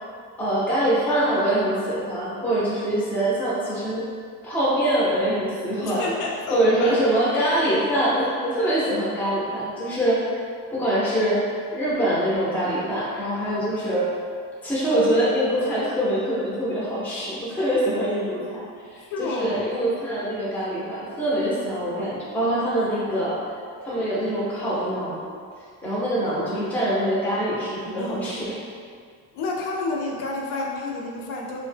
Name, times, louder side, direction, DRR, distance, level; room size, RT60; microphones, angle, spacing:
voice 1, 0.4-4.1 4.4-6.1 6.5-10.2 10.7-11.4 11.7-14.1 14.6-18.6 18.9-23.4 23.8-25.2 25.8-28.6, right 1 dB, 5° left, -8 dB, 0.4 m, -24 dB
voice 2, 5.8-7.1 19.0-19.7 28.0-28.4 29.3-31.6, left 2 dB, 65° left, -2 dB, 0.5 m, -30 dB
2.7 x 2.0 x 3.2 m, 2.1 s
cardioid pair, 165°, 34 cm